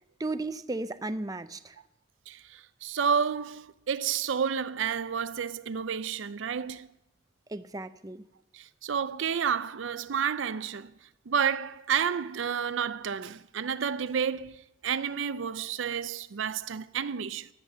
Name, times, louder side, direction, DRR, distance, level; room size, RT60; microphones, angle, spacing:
voice 1, 0.2-1.8 7.5-8.2, right 2 dB, 20° right, 0.5 m, -35 dB
voice 2, 2.3-6.9 8.5-10.9 11.3-17.5, right 7 dB, 75° right, 0.5 m, -30 dB
15.5 x 11.5 x 6.7 m
head